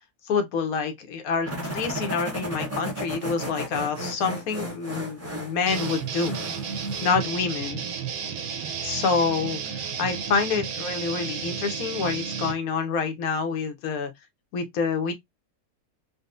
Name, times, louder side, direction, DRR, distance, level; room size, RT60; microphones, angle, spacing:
voice 1, 0.3-6.4 7.0-7.8 8.8-14.1 14.5-15.1, left 5 dB, 75° left, 1.1 m, -27 dB
sound 1, 1.4-7.3, equal, 20° right, 0.4 m, -34 dB
sound 2, 5.7-12.5, right 6 dB, 65° right, 1.0 m, -32 dB
3.9 x 2.0 x 2.4 m
omnidirectional pair, 1.5 m